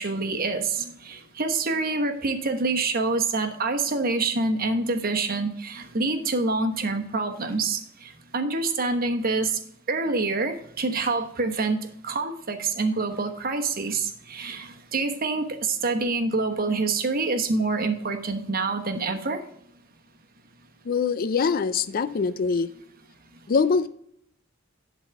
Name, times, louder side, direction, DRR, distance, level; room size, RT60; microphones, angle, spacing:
voice 1, 0.0-7.8 8.3-9.5 9.9-11.8 12.0-15.4 15.8-19.4, right 3 dB, 50° right, 6 dB, 1.1 m, -26 dB
voice 2, 20.9-22.7 23.5-23.9, left 5 dB, 50° left, 15 dB, 0.4 m, -23 dB
10.5 x 4.1 x 5.9 m, 0.69 s
head